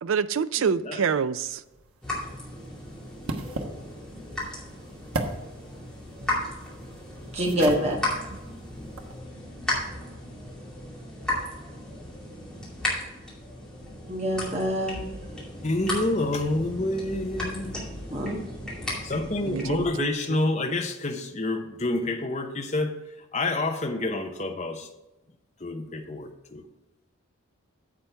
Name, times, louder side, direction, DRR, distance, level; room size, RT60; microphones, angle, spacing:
voice 1, 0.0-1.6 19.5-20.4, right 6 dB, 70° right, 0.4 m, -27 dB
voice 2, 0.6-1.1 15.6-17.8 19.0-23.0 23.3-24.9 25.6-26.6, left 2 dB, 35° left, 0.9 m, -28 dB
sound 1, 1.5-9.2, right 2 dB, 85° right, 1.2 m, -38 dB
sound 2, 2.0-19.9, left 1 dB, 5° left, 2.4 m, -35 dB
voice 3, 7.3-8.0 14.1-15.0 18.1-18.4, equal, 30° right, 1.3 m, -25 dB
9.7 x 7.5 x 3.4 m
head